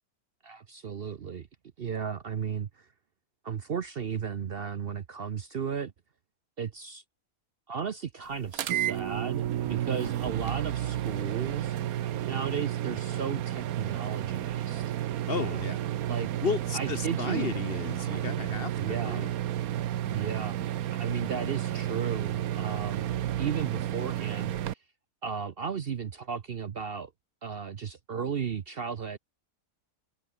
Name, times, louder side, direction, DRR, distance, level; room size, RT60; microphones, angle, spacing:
voice 1, 0.4-1.5 1.8-2.7 3.4-5.9 6.6-7.0 7.7-11.8 12.3-14.8 15.4-15.6 16.1-16.3 16.7-17.5 18.8-19.3 20.1-20.6 20.9-23.1 23.4-24.5 25.2-27.1 27.4-29.2, right 7 dB, 50° right, 0.8 m, -34 dB
sound 1, 8.5-24.7, right 12 dB, 75° right, 1.2 m, -32 dB
voice 2, 15.3-15.9 16.4-19.3, left 6 dB, 45° left, 0.9 m, -34 dB
open air
omnidirectional pair, 1.6 m